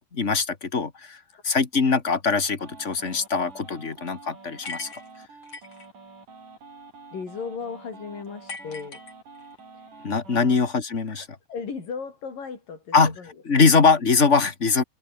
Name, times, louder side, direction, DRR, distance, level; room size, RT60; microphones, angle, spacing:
voice 1, 0.1-4.9 10.0-11.3 12.9-13.2 13.5-14.8, left 4 dB, 25° left, 1.8 m, -22 dB
sound 1, 2.6-10.6, right 4 dB, 70° right, 8.7 m, -47 dB
sound 2, 4.6-5.9 8.5-9.6, left 4 dB, 45° left, 6.2 m, -40 dB
voice 2, 7.1-9.0 10.3-10.6 11.1-13.7, left 5 dB, 85° left, 6.5 m, -36 dB
omnidirectional pair, 3.8 m